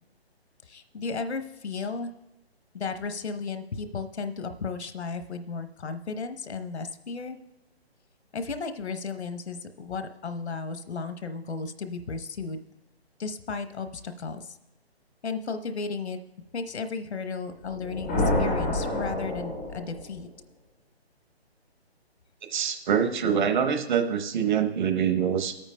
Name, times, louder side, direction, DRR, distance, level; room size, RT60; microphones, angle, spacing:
voice 1, 0.6-2.1 2.7-7.4 8.3-12.6 13.2-14.6 15.2-16.2 16.5-20.3, left 4 dB, 85° left, 9 dB, 0.9 m, -34 dB
sound 1, 17.6-20.2, left 1 dB, 10° left, 0.4 m, -28 dB
voice 2, 22.5-25.6, right 8 dB, 45° right, 6 dB, 1.0 m, -25 dB
22.5 x 8.9 x 2.2 m, 0.98 s
hypercardioid pair, 150°, 32 cm